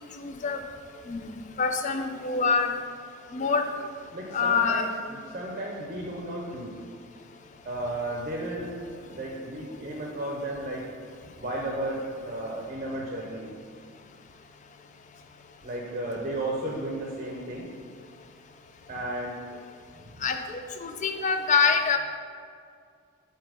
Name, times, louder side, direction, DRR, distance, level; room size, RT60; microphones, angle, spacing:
voice 1, 0.2-0.6 1.1-2.7 3.3-3.7 4.3-4.9 20.2-22.0, left 5 dB, 35° left, 6 dB, 0.3 m, -25 dB
voice 2, 4.1-6.7 7.6-8.7 9.0-10.8 11.4-13.5 15.6-17.6 18.9-19.4 20.1-20.3, right 1 dB, 30° right, -2 dB, 0.6 m, -33 dB
7.2 x 2.8 x 4.9 m, 2.2 s
head